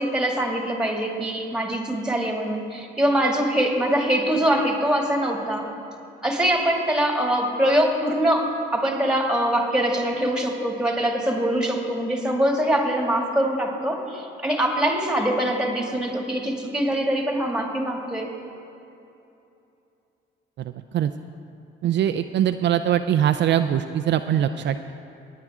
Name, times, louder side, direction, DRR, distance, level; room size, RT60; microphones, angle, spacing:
voice 1, 0.0-5.7 6.2-18.3, right 1 dB, 5° right, 0 dB, 2.2 m, -23 dB
voice 2, 21.8-24.9, right 10 dB, 65° right, 9 dB, 0.4 m, -22 dB
19.5 x 9.5 x 3.6 m, 2.8 s
cardioid pair, 90°, 20 cm